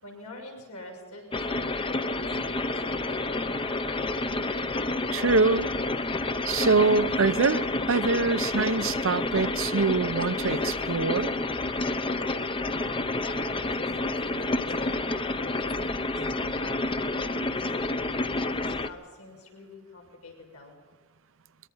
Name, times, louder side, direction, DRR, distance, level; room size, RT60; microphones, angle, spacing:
voice 1, 0.0-3.9 13.2-17.7 18.4-18.5 18.8-20.8, left 2 dB, 85° left, 1 dB, 6.3 m, -46 dB
sound 1, 1.3-18.9, left 2 dB, 25° left, 0.8 m, -29 dB
voice 2, 5.1-5.7 6.4-11.3, right 4 dB, 60° right, 15 dB, 0.7 m, -24 dB
23.0 x 22.0 x 5.6 m, 1.4 s
head